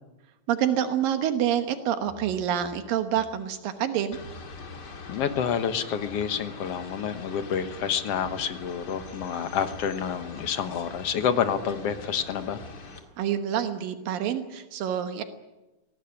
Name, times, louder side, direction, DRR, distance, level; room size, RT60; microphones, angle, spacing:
voice 1, 0.5-4.2 13.2-15.2, right 10 dB, 80° right, 8 dB, 2.9 m, -27 dB
sound 1, 2.1-5.7 6.1-6.5 6.8-13.2, right 2 dB, 60° right, 8.6 m, -53 dB
sound 2, 4.1-13.0, left 3 dB, 35° left, 2.1 m, -43 dB
voice 2, 5.1-12.6, left 7 dB, 60° left, 9 dB, 1.9 m, -28 dB
22.0 x 17.5 x 9.9 m, 1.1 s
omnidirectional pair, 4.0 m